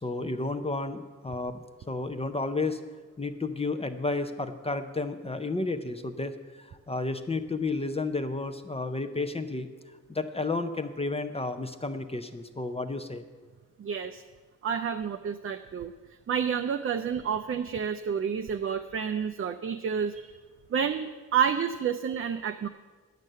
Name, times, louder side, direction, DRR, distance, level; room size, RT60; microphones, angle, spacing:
voice 1, 0.0-2.8 3.2-9.7 10.1-13.2, left 3 dB, 20° left, 9 dB, 0.5 m, -32 dB
voice 2, 13.8-14.2 14.6-15.9 16.3-20.4 20.7-22.7, right 7 dB, 45° right, 7 dB, 0.4 m, -29 dB
10.5 x 6.6 x 7.4 m, 1.4 s
wide cardioid pair, 150°, 32 cm